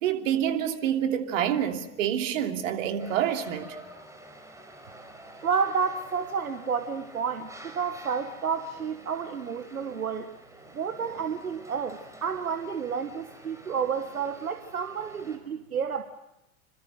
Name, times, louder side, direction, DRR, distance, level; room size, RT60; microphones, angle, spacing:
voice 1, 0.0-3.8, right 10 dB, 60° right, 2.9 m, -27 dB
sound 1, 3.0-15.4, right 1 dB, 5° right, 5.4 m, -48 dB
voice 2, 5.4-10.3 10.7-16.0, right 6 dB, 85° right, 1.4 m, -30 dB
27.0 x 26.0 x 6.6 m
figure-of-eight pair, 85°, 42 cm